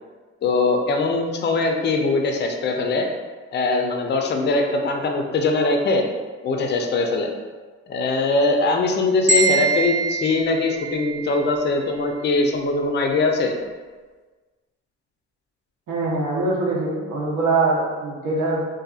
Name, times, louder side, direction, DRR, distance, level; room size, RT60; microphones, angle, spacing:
voice 1, 0.4-3.1 3.5-6.1 6.4-7.3 7.9-13.5, left 3 dB, 35° left, 3 dB, 0.4 m, -21 dB
sound 1, 9.3-11.5, right 3 dB, 25° right, 0.7 m, -23 dB
voice 2, 15.9-18.6, right 3 dB, 80° right, -3 dB, 0.8 m, -23 dB
2.7 x 2.4 x 2.3 m, 1.4 s
cardioid pair, 90°, 30 cm